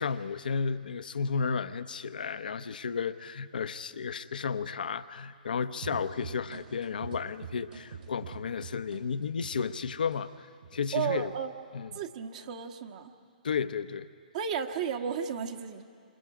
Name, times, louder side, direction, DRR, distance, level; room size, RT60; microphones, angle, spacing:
voice 1, 0.0-10.5 10.7-11.3 11.7-11.9 13.4-14.1, left 6 dB, 75° left, 12 dB, 0.8 m, -33 dB
sound 1, 5.8-10.2 10.6-11.4, right 6 dB, 75° right, 5.9 m, -43 dB
voice 2, 10.9-11.5 11.9-13.1 14.3-15.8, right 7 dB, 50° right, 5 dB, 1.5 m, -33 dB
28.5 x 26.5 x 4.9 m, 2.3 s
hypercardioid pair, 125°, 5 cm